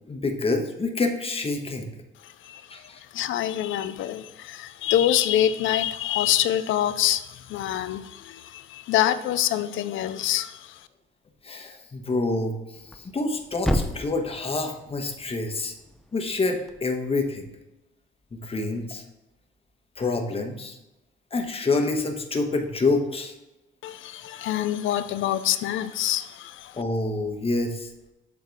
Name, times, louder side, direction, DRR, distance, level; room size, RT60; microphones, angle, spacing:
voice 1, 0.1-1.9 2.7-3.0 11.4-12.5 12.9-15.7 16.1-17.5 18.3-19.0 20.0-20.8 21.3-23.3 26.8-27.9, left 3 dB, 30° left, 4 dB, 1.2 m, -27 dB
voice 2, 2.2-2.8 3.1-10.8 23.8-26.8, left 11 dB, 80° left, 12 dB, 0.5 m, -26 dB
Thump thud, 12.7-16.8, equal, ahead, 0.6 m, -33 dB
7.6 x 4.0 x 4.6 m, 0.95 s
cardioid pair, 90°, 20 cm